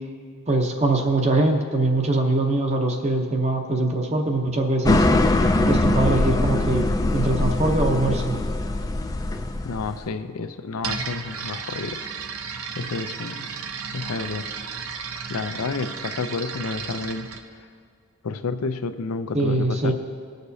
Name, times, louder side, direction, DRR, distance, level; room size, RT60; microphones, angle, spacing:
voice 1, 0.5-5.0 5.7-8.4 19.3-19.9, right 2 dB, 30° right, 2 dB, 0.7 m, -22 dB
sound 1, 4.9-10.1, left 2 dB, 15° left, 0.3 m, -22 dB
voice 2, 9.6-12.1 12.7-13.5 13.9-14.5 15.3-17.3 18.2-19.9, left 4 dB, 85° left, 9 dB, 0.5 m, -30 dB
sound 2, 10.8-17.4, right 6 dB, 75° right, 0.7 m, -34 dB
19.0 x 6.5 x 2.7 m, 2.3 s
head